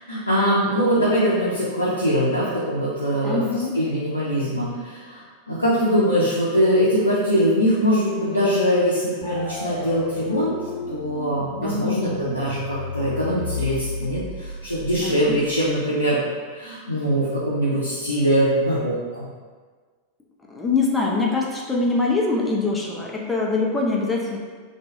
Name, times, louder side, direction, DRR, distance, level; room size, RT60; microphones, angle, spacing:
voice 1, 0.1-3.4 3.7-10.5 10.9-16.2 16.5-19.3, equal, 85° left, -8 dB, 0.4 m, -22 dB
voice 2, 3.2-3.7 11.6-11.9 15.0-15.4 20.5-24.4, left 3 dB, 10° left, -2 dB, 0.4 m, -23 dB
sound 1, 9.2-15.9, left 3 dB, 55° left, 1.0 m, -33 dB
2.4 x 2.2 x 2.7 m, 1.5 s
figure-of-eight pair, 90°, 0 cm